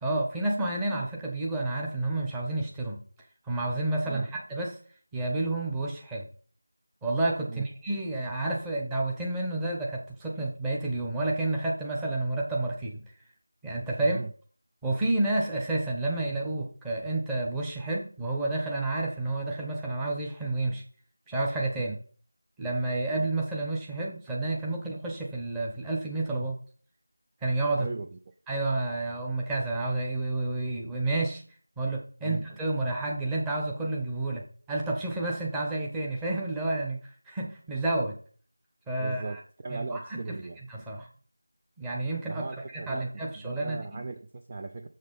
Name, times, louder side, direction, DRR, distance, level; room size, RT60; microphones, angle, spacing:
voice 1, 0.0-3.0 3.4-4.8 5.1-6.2 7.0-13.0 13.6-14.2 14.8-20.8 21.3-21.9 22.6-26.6 27.4-27.9 28.5-31.4 31.8-37.0 37.3-38.2 38.9-39.4 39.7-40.0 40.3-40.4 40.7-41.1 41.8-42.4 42.7-43.8, right 2 dB, 5° right, -2 dB, 0.9 m, -30 dB
voice 2, 14.0-14.3 21.8-22.0 27.8-28.1 32.2-32.4 39.0-40.6 42.3-44.9, right 3 dB, 20° right, 5 dB, 0.4 m, -37 dB
6.8 x 6.6 x 5.4 m, 0.43 s
figure-of-eight pair, 175°, 0 cm